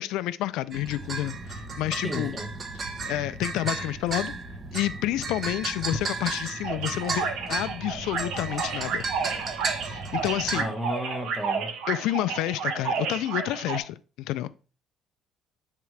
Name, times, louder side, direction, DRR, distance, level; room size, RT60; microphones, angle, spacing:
voice 1, 0.0-2.4 2.7-4.3 4.7-9.0 9.8-10.7 11.9-14.5, left 15 dB, 85° left, 0.3 m, -29 dB
sound 1, 0.7-10.6, right 3 dB, 25° right, 1.0 m, -34 dB
voice 2, 2.0-2.5 10.5-11.7, equal, ahead, 1.1 m, -33 dB
sound 2, 6.6-13.8, right 5 dB, 70° right, 1.3 m, -31 dB
10.0 x 3.7 x 3.2 m
cardioid pair, 165°, 0 cm